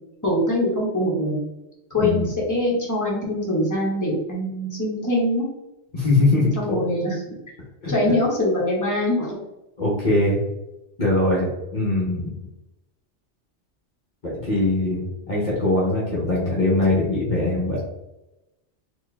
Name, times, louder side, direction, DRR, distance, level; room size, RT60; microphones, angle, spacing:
voice 1, 0.2-1.4 1.9-5.4 6.5-7.3 7.9-9.4, left 1 dB, 15° left, -4 dB, 1.2 m, -23 dB
voice 2, 5.9-6.8 7.8-7.9 9.8-10.4 11.0-12.3 14.2-17.8, left 2 dB, 45° left, -6 dB, 1.0 m, -22 dB
4.3 x 2.6 x 3.3 m, 0.95 s
omnidirectional pair, 1.2 m